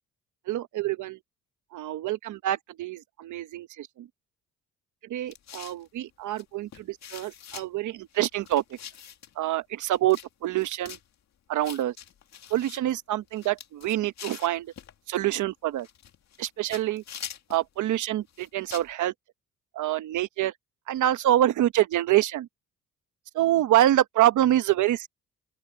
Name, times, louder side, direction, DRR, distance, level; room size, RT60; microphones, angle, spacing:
voice 1, 0.5-1.2 1.7-3.9 5.1-8.6 9.4-11.0 11.5-11.9 12.5-14.7 15.1-15.9 16.4-17.0 17.5-19.1 19.8-20.5 20.9-22.5 23.3-25.1, right 13 dB, 75° right, 1.1 m, -26 dB
sound 1, 5.3-5.9 6.4-6.5 6.7-7.7 8.1-9.3 9.9-10.3 10.5-11.0 11.6-12.8 13.3-14.9 15.8-16.5 16.7-17.6 18.3-18.9, left 9 dB, 60° left, 2.3 m, -43 dB
open air
cardioid pair, 90°, 30 cm